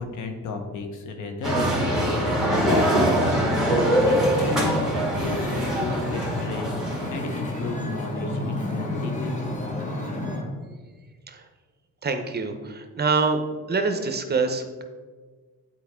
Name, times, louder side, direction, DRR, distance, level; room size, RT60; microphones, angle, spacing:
voice 1, 0.0-9.4, left 3 dB, 80° left, 5 dB, 1.0 m, -33 dB
sound 1, 1.4-7.1, right 1 dB, ahead, 2.0 m, -23 dB
Wind / Ocean, 2.5-10.4, left 1 dB, 25° left, 1.4 m, -31 dB
voice 2, 12.0-13.4 13.7-14.8, right 4 dB, 35° right, 7 dB, 0.8 m, -25 dB
8.4 x 4.5 x 3.6 m, 1.4 s
cardioid pair, 90°, 30 cm